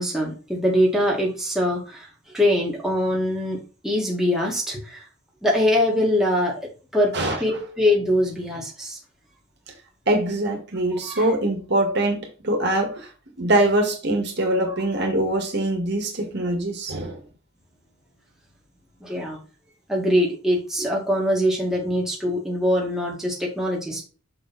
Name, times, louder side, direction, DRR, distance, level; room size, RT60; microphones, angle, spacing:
voice 1, 0.0-2.1 2.3-5.1 5.4-6.6 6.9-7.1 7.4-9.0 10.9-11.3 14.7-14.8 19.0-19.4 19.9-24.0, left 1 dB, ahead, 1.8 m, -23 dB
voice 2, 10.1-13.1 13.4-17.2, right 1 dB, 55° right, 2.0 m, -23 dB
6.6 x 4.8 x 4.1 m
head